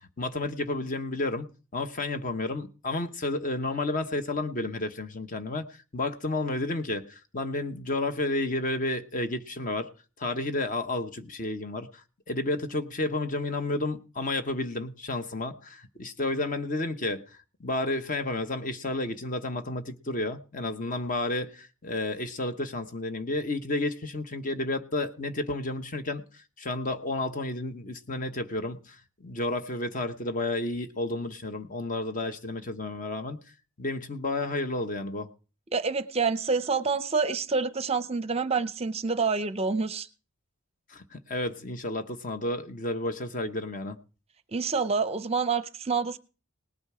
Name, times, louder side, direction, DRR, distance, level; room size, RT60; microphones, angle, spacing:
voice 1, 0.2-1.5 1.7-9.9 10.2-33.4 33.8-35.3 40.9-44.0, left 2 dB, 40° left, 9 dB, 0.9 m, -31 dB
voice 2, 35.7-40.1 44.5-46.2, right 4 dB, 30° right, 13 dB, 0.6 m, -27 dB
19.0 x 8.8 x 4.8 m, 0.36 s
head